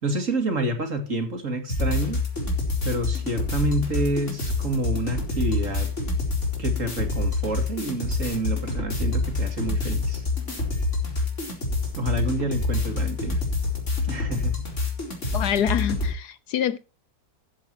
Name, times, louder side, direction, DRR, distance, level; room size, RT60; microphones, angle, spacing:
voice 1, 0.0-2.2 2.8-5.9 6.6-10.3 12.0-13.5 14.1-14.7, right 1 dB, 50° right, 2.9 m, -28 dB
sound 1, 1.7-16.1, left 3 dB, 45° left, 4.5 m, -27 dB
voice 2, 15.3-16.8, left 9 dB, 70° left, 1.5 m, -26 dB
14.5 x 13.0 x 2.9 m
omnidirectional pair, 1.8 m